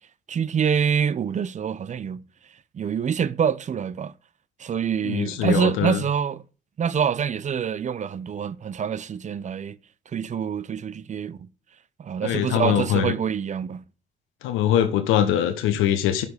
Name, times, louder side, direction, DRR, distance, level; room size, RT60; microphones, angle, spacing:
voice 1, 0.3-2.2 2.7-4.1 4.6-6.4 6.8-9.8 10.1-11.5 12.0-13.8, right 7 dB, 35° right, 0.5 m, -26 dB
voice 2, 5.0-6.0 12.2-13.1 14.4-16.2, left 10 dB, 75° left, 0.7 m, -22 dB
6.0 x 4.9 x 4.8 m
hypercardioid pair, 50°, 21 cm